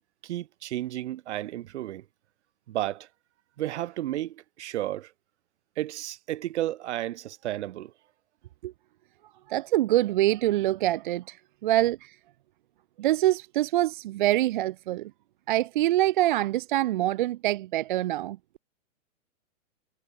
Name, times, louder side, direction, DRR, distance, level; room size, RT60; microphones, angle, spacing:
voice 1, 0.2-2.0 2.7-3.1 3.6-5.1 5.8-7.9, right 13 dB, 55° right, 2.8 m, -32 dB
voice 2, 9.5-11.4 11.6-12.1 13.0-15.1 15.5-18.4, right 15 dB, 40° right, 0.5 m, -25 dB
hypercardioid pair, 145°, 40 cm